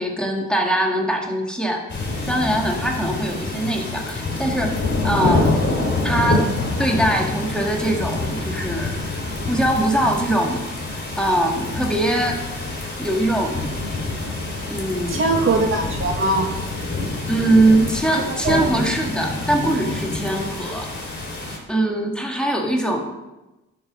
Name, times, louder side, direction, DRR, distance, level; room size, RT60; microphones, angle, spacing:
voice 1, 0.0-1.8 2.3-4.8 5.0-6.5 6.8-10.6 11.2-12.4 13.0-13.7 14.7-15.2 17.3-20.9 21.7-23.0, right 1 dB, 5° left, 0 dB, 1.8 m, -22 dB
sound 1, 1.9-21.6, left 2 dB, 40° left, 3.5 m, -26 dB
voice 2, 15.1-16.5 18.2-18.6, right 2 dB, 45° right, 3 dB, 1.7 m, -21 dB
11.0 x 5.8 x 6.1 m, 1.0 s
cardioid pair, 90°, 30 cm